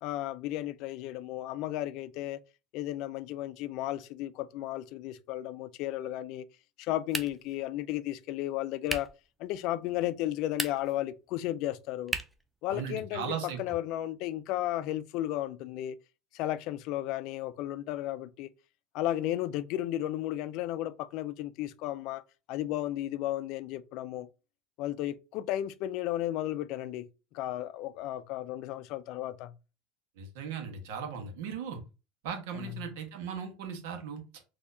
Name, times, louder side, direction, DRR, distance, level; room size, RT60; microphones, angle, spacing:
voice 1, 0.0-2.4 2.7-6.4 6.8-9.1 9.4-12.1 12.6-15.9 16.3-18.5 18.9-22.2 22.5-24.3 24.8-27.1 27.3-29.5 32.5-32.9, left 14 dB, 55° left, 0.4 m, -34 dB
sound 1, 7.1-7.6 8.9-9.2 10.4-11.0 12.1-12.5, right 1 dB, 5° right, 0.4 m, -35 dB
voice 2, 12.7-13.6 30.2-31.8 32.2-34.2, right 7 dB, 80° right, 1.2 m, -37 dB
4.2 x 2.8 x 2.6 m
cardioid pair, 145°, 0 cm